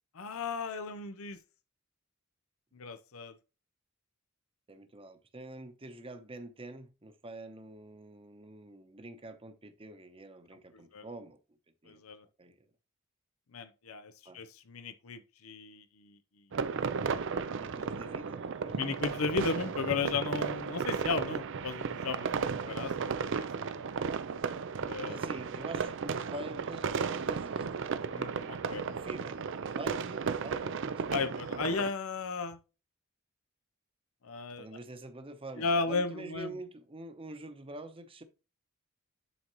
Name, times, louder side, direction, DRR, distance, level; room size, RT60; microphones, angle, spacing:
voice 1, 0.2-1.4 2.7-3.4 10.7-11.1 11.9-12.2 13.5-16.2 17.5-17.6 18.8-24.0 24.9-25.3 28.1-28.8 31.1-32.6 34.2-34.7 35.6-36.5, left 4 dB, 75° left, 0.7 m, -35 dB
voice 2, 4.7-11.4 11.8-12.0 12.4-12.7 14.2-14.4 17.5-18.8 25.1-27.7 28.9-29.4 29.8-31.5 34.6-38.2, right 2 dB, 25° right, 0.9 m, -46 dB
sound 1, 16.5-31.9, right 5 dB, 60° right, 0.5 m, -34 dB
11.0 x 3.9 x 3.0 m
head